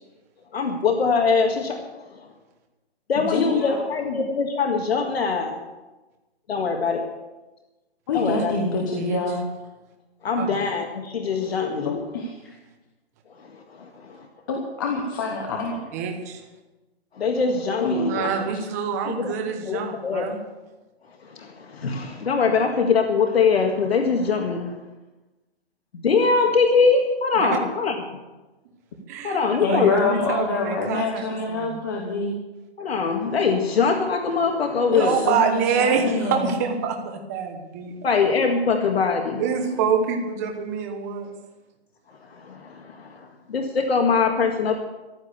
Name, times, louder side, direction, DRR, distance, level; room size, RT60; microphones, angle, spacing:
voice 1, 0.5-2.3 3.1-5.5 6.5-7.1 8.1-8.6 10.2-12.0 13.4-14.3 17.1-18.3 19.1-19.3 19.6-20.3 21.2-24.8 26.0-27.9 29.2-30.0 32.8-35.2 38.0-39.4 42.3-44.8, left 5 dB, 70° left, 3 dB, 1.9 m, -23 dB
voice 2, 3.3-4.2 8.1-9.4 11.8-12.5 14.5-15.8 17.8-18.3 29.6-32.4 34.9-36.5, left 3 dB, 20° left, 1 dB, 1.1 m, -26 dB
voice 3, 15.9-16.4 18.1-20.4 27.3-27.6 29.1-31.8 35.0-37.9 39.4-41.3, right 6 dB, 15° right, 3 dB, 1.1 m, -26 dB
14.5 x 11.5 x 6.7 m, 1.1 s
hypercardioid pair, 180°, 32 cm